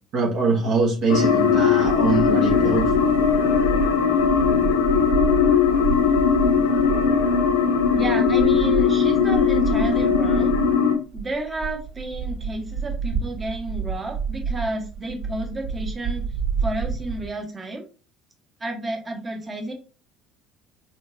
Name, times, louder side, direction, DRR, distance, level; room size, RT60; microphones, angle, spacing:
voice 1, 0.1-2.9, right 4 dB, 55° right, 0 dB, 1.2 m, -23 dB
sound 1, 1.1-11.0, left 6 dB, 75° left, 0.6 m, -19 dB
sound 2, 1.8-10.8 11.1-17.3, right 5 dB, 80° right, 2.4 m, -30 dB
voice 2, 7.9-10.5 11.1-16.2 16.6-17.9 18.6-19.7, right 2 dB, 25° right, 2 dB, 1.3 m, -31 dB
4.3 x 4.1 x 2.7 m, 0.34 s
figure-of-eight pair, 60°, 0 cm